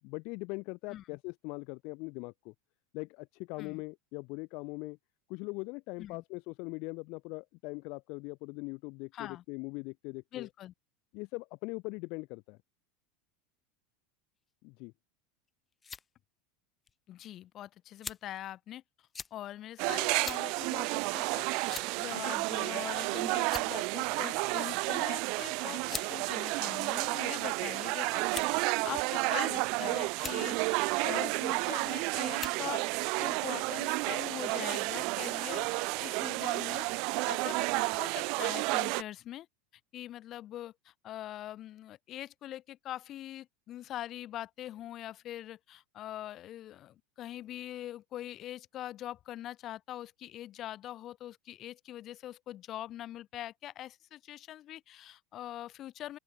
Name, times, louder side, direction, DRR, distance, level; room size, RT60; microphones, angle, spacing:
voice 1, 0.0-2.5 2.9-5.0 5.3-10.5 11.1-12.6 14.6-14.9, left 28 dB, 60° left, 3.7 m, -41 dB
voice 2, 9.1-9.4 10.3-10.7 17.1-18.8 19.3-36.9 37.3-39.5 39.9-56.2, left 13 dB, 45° left, 5.3 m, -43 dB
sound 1, 15.5-16.1 16.9-17.0 18.0-18.4 19.1-19.3 20.2-20.4 20.8-20.9 21.7-22.0 22.9-23.1 23.4-23.9 25.0-25.2 25.9-26.1 26.9-27.5 28.3-28.7 29.4-29.8 30.1-30.4 31.6-31.9 32.4-32.6, left 6 dB, 25° left, 0.8 m, -42 dB
sound 2, 19.8-39.0, right 30 dB, 60° right, 0.6 m, -31 dB
open air
hypercardioid pair, 105°, 0 cm